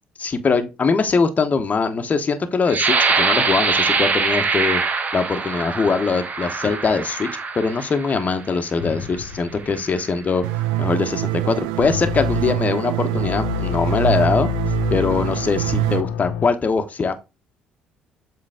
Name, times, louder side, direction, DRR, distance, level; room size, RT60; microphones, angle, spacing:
voice 1, 0.2-4.8 5.1-7.3 7.5-10.4 10.8-14.5 14.9-17.1, left 4 dB, 35° left, 1.3 m, -22 dB
sound 1, 2.7-8.3 9.0-9.2 9.6-10.1, right 4 dB, 35° right, 1.1 m, -23 dB
sound 2, 8.8-16.5, left 8 dB, 75° left, 0.7 m, -29 dB
sound 3, 10.4-16.0, right 15 dB, 80° right, 0.3 m, -25 dB
7.6 x 3.8 x 3.6 m
hypercardioid pair, 55°, 4 cm